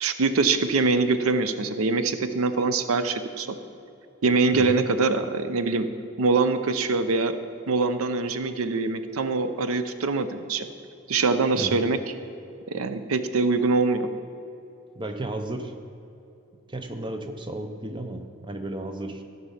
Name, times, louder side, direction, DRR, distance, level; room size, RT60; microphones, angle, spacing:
voice 1, 0.0-3.6 4.2-5.9 6.2-7.4 7.7-10.7 11.1-12.0 12.7-14.1, right 3 dB, 90° right, 10 dB, 0.6 m, -24 dB
voice 2, 4.5-4.8 11.5-11.9 14.9-15.7 16.7-19.2, right 1 dB, 25° right, 6 dB, 0.6 m, -33 dB
13.5 x 5.5 x 5.6 m, 2.8 s
head